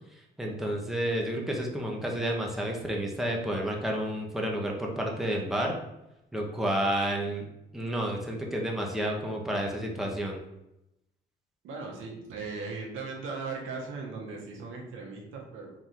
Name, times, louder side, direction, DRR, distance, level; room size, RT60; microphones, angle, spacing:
voice 1, 0.4-5.7 6.3-7.5 7.7-10.4, right 1 dB, ahead, -1 dB, 0.8 m, -30 dB
voice 2, 11.6-15.7, right 4 dB, 85° right, 0 dB, 1.0 m, -38 dB
3.8 x 2.6 x 4.4 m, 0.89 s
cardioid pair, 90°, 20 cm